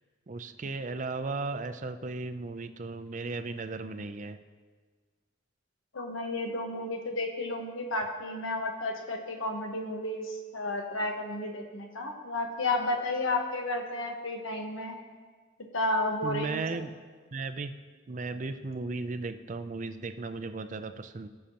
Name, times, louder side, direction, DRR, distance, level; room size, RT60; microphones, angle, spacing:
voice 1, 0.3-4.4 16.2-16.9 17.3-17.7 18.1-21.3, right 3 dB, 40° right, 10 dB, 0.4 m, -36 dB
voice 2, 5.9-14.9 15.7-16.6, left 2 dB, 85° left, 3 dB, 1.3 m, -32 dB
17.5 x 6.6 x 2.9 m, 1.5 s
head